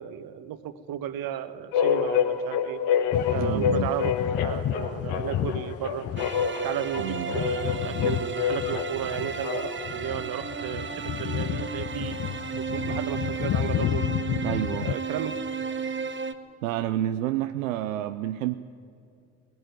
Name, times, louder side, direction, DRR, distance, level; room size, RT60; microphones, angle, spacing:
voice 1, 0.0-2.8 3.3-4.1 4.4-6.1 6.6-12.2 12.6-14.0 14.8-15.4, right 11 dB, 60° right, 11 dB, 1.3 m, -34 dB
sound 1, 1.7-10.0, left 8 dB, 75° left, 1.3 m, -28 dB
sound 2, 3.1-15.0, left 11 dB, 40° left, 0.5 m, -31 dB
voice 2, 3.4-3.9 7.0-7.4 14.4-14.9 16.6-18.6, right 13 dB, 85° right, 10 dB, 0.6 m, -29 dB
sound 3, 6.2-16.3, right 6 dB, 30° right, 1.3 m, -34 dB
20.5 x 17.0 x 9.4 m, 2.4 s
hypercardioid pair, 45°, 39 cm